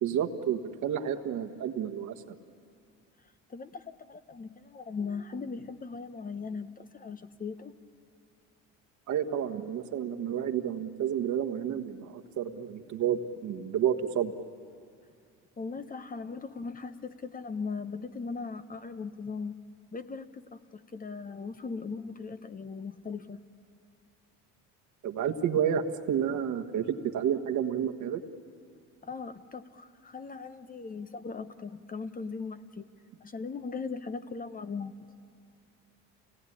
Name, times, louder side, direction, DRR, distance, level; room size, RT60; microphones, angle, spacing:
voice 1, 0.0-2.4 9.1-14.3 25.0-28.2, right 9 dB, 65° right, 6 dB, 1.4 m, -30 dB
voice 2, 3.5-7.8 15.6-19.6 19.9-23.4 29.0-32.9 33.2-34.9, left 4 dB, 25° left, 11 dB, 1.0 m, -39 dB
28.5 x 18.0 x 10.0 m, 2.5 s
cardioid pair, 105°, 32 cm